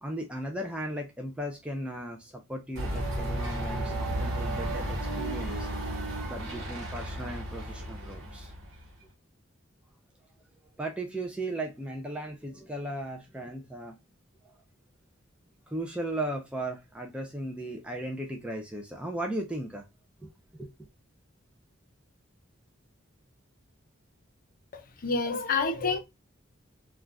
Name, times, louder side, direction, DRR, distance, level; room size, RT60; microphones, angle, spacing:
voice 1, 0.0-5.7 6.3-8.5 10.8-14.0 14.4-14.5 15.7-19.9 20.2-20.9, right 1 dB, 5° right, 0.4 m, -36 dB
sound 1, 2.7-8.9, right 1 dB, 70° right, 1.2 m, -33 dB
voice 2, 24.7-26.0, left 4 dB, 45° left, 0.6 m, -28 dB
2.4 x 2.3 x 3.2 m
head